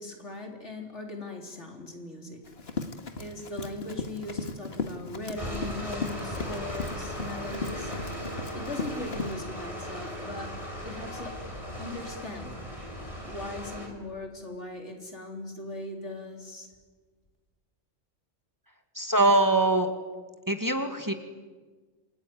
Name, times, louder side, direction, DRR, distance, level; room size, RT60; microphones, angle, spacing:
voice 1, 0.0-2.4 3.2-7.9 8.5-10.6 10.8-11.4 11.8-13.0 13.2-16.7, left 2 dB, 80° left, 2 dB, 4.1 m, -39 dB
Run, 2.5-9.3, left 4 dB, 60° left, 2.1 m, -37 dB
sound 1, 5.4-13.9, equal, 30° left, 4.8 m, -37 dB
voice 2, 19.0-19.9 20.5-21.1, right 2 dB, 15° right, 6 dB, 2.2 m, -23 dB
28.0 x 21.0 x 9.6 m, 1.4 s
omnidirectional pair, 1.2 m